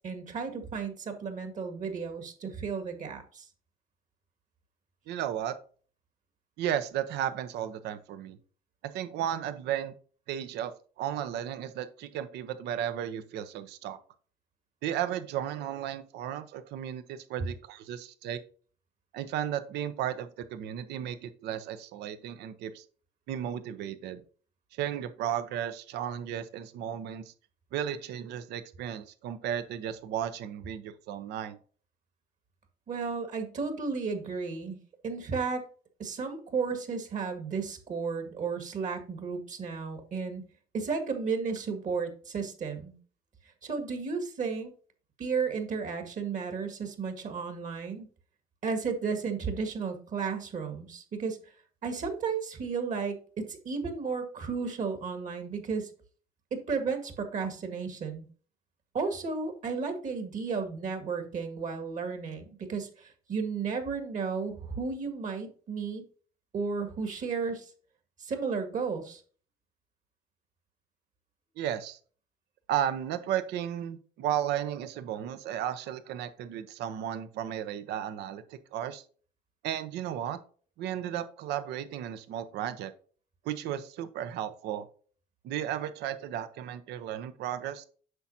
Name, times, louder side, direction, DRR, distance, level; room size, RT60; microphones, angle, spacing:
voice 1, 0.0-3.5 32.9-34.8 35.0-35.7 36.0-40.4 40.7-43.0 43.6-44.7 45.2-48.1 48.6-51.4 51.8-55.9 56.5-58.3 58.9-66.0 66.5-67.7 68.2-69.2, right 5 dB, 50° right, 7 dB, 1.8 m, -33 dB
voice 2, 5.1-5.5 6.6-8.4 8.9-9.9 10.3-10.7 11.0-14.0 14.8-18.4 19.1-22.8 23.3-24.2 24.7-27.3 27.7-31.6 71.6-72.0 72.7-79.0 79.6-80.4 80.8-82.9 83.4-84.9 85.4-87.9, right 10 dB, 80° right, 11 dB, 0.8 m, -34 dB
8.0 x 6.1 x 2.8 m, 0.41 s
cardioid pair, 110°, 17 cm